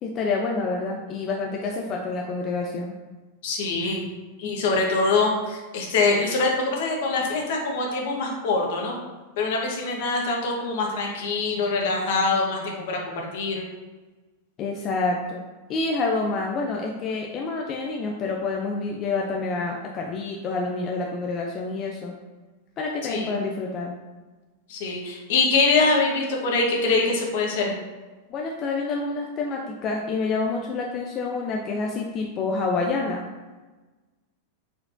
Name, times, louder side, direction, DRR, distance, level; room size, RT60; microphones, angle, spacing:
voice 1, 0.0-2.9 14.6-15.4 15.7-22.1 22.8-24.0 28.3-33.2, left 3 dB, 25° left, 0 dB, 0.4 m, -28 dB
voice 2, 3.4-4.1 4.4-9.0 9.4-13.0 13.3-13.6 23.1-23.4 24.7-27.7, left 3 dB, 60° left, 0 dB, 1.1 m, -24 dB
4.7 x 4.5 x 2.6 m, 1.2 s
supercardioid pair, 160°, 0 cm